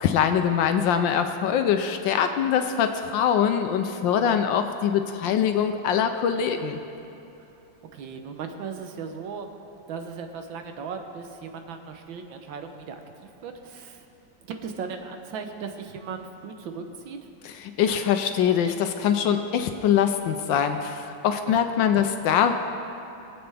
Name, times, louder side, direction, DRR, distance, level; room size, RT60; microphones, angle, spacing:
voice 1, 0.0-6.8 17.8-22.5, left 8 dB, 75° left, 7 dB, 1.3 m, -23 dB
voice 2, 7.9-14.1 14.4-17.3 21.5-21.6 21.9-22.0, right 5 dB, 75° right, 6 dB, 1.6 m, -37 dB
23.0 x 7.8 x 3.5 m, 2.8 s
omnidirectional pair, 2.1 m